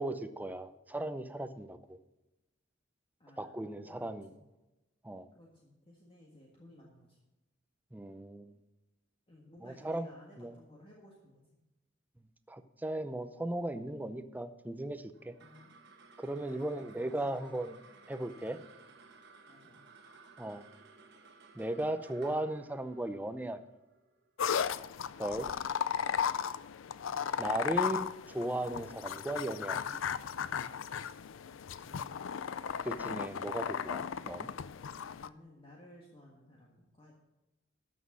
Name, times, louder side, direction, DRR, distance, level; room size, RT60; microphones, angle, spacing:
voice 1, 0.0-2.0 3.4-4.3 5.0-5.3 7.9-8.5 9.6-10.1 10.4-10.5 12.5-15.3 16.2-17.8 18.1-18.6 20.4-20.6 21.5-23.6 25.2-25.5 27.4-29.8 32.8-34.5, right 1 dB, 10° right, 10 dB, 0.6 m, -37 dB
voice 2, 3.2-4.4 5.3-7.2 9.3-11.4 15.4-15.8 16.4-17.3 19.5-19.8 31.8-32.8 35.1-37.1, left 1 dB, 30° left, -2 dB, 1.7 m, -57 dB
sound 1, 15.1-25.8, right 4 dB, 60° right, 1.2 m, -58 dB
sound 2, 24.4-35.3, left 7 dB, 75° left, 0.4 m, -36 dB
12.5 x 6.3 x 6.2 m, 1.0 s
head